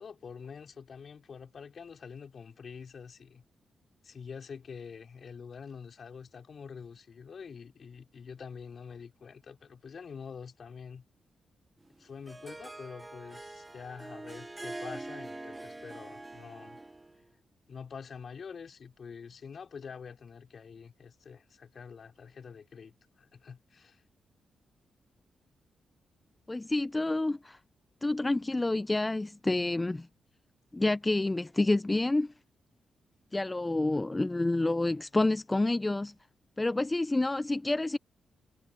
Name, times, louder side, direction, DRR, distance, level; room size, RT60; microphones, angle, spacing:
voice 1, 0.0-3.4 4.0-11.0 12.0-16.8 17.7-24.0, left 6 dB, 60° left, 4.3 m, -46 dB
Harp, 11.9-17.2, right 2 dB, 20° right, 0.8 m, -44 dB
voice 2, 26.5-27.6 28.0-30.1 30.7-32.3 33.3-36.1 36.6-38.0, left 2 dB, 20° left, 0.5 m, -28 dB
supercardioid pair, 55°, 0 cm